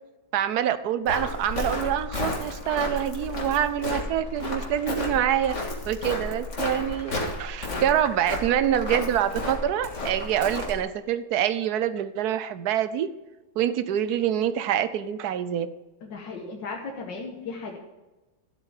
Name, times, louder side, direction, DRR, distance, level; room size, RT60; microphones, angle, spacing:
voice 1, 0.3-5.6 5.9-7.1 7.4-13.1 13.6-15.7, right 10 dB, 70° right, 14 dB, 1.1 m, -26 dB
Walk footsteps, 1.1-10.8, left 2 dB, 40° left, 2.1 m, -32 dB
voice 2, 16.0-17.8, left 4 dB, 80° left, 0 dB, 1.9 m, -36 dB
12.5 x 8.1 x 4.9 m, 1.1 s
omnidirectional pair, 2.0 m